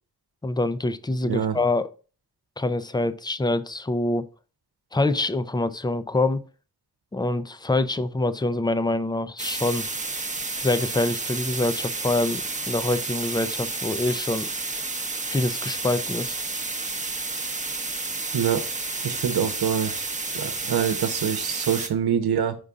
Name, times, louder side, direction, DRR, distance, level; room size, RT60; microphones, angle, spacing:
voice 1, 0.4-1.9 2.6-4.2 4.9-6.4 7.1-9.9 10.6-14.5 15.3-16.4, left 2 dB, 10° left, 0.5 m, -25 dB
voice 2, 1.2-1.6 18.3-18.6 19.0-20.0 20.3-22.6, right 8 dB, 80° right, 1.0 m, -25 dB
sound 1, 9.4-21.9, right 3 dB, 20° right, 0.9 m, -31 dB
5.3 x 5.3 x 3.6 m
wide cardioid pair, 90°, 37 cm